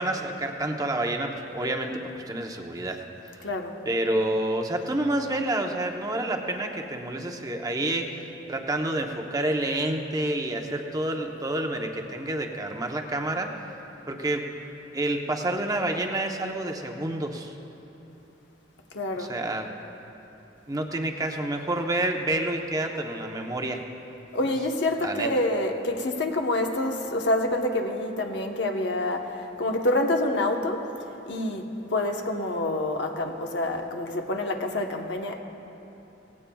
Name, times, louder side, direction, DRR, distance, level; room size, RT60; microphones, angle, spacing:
voice 1, 0.0-3.0 3.2-3.5 3.9-13.5 14.1-14.5 14.9-17.5 19.2-19.7 20.7-23.8 25.0-25.3, right 1 dB, 20° right, 3 dB, 0.8 m, -28 dB
voice 2, 3.4-3.7 18.9-19.3 24.3-30.8 31.3-35.4, left 1 dB, 70° left, 3 dB, 1.0 m, -27 dB
18.0 x 16.0 x 2.3 m, 2.9 s
head